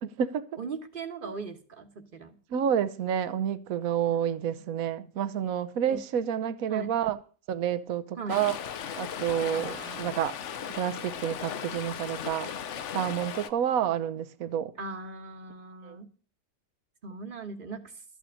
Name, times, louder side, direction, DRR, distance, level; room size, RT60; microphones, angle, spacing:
voice 1, 0.0-0.5 1.2-1.3 2.5-7.2 7.5-8.6 9.0-10.4 10.7-12.5 12.9-14.7 15.8-16.0, right 9 dB, 65° right, 1.2 m, -29 dB
voice 2, 0.6-2.4 4.1-4.3 5.9-6.0 6.7-6.9 8.2-8.5 9.5-10.1 14.8-16.1 17.0-18.0, right 4 dB, 35° right, 1.4 m, -39 dB
Stream, 8.3-13.5, left 8 dB, 55° left, 0.9 m, -37 dB
13.0 x 6.1 x 8.4 m
omnidirectional pair, 1.7 m